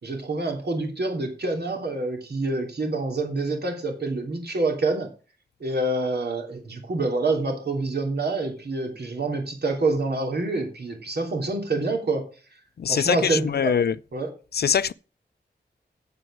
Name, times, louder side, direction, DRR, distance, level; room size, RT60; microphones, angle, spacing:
voice 1, 0.0-5.1 5.6-12.2 12.9-13.7 14.1-14.3, right 2 dB, 65° right, 3.2 m, -27 dB
voice 2, 12.8-13.9 14.5-14.9, left 7 dB, 65° left, 0.5 m, -23 dB
8.9 x 8.0 x 6.2 m
wide cardioid pair, 90°, 18 cm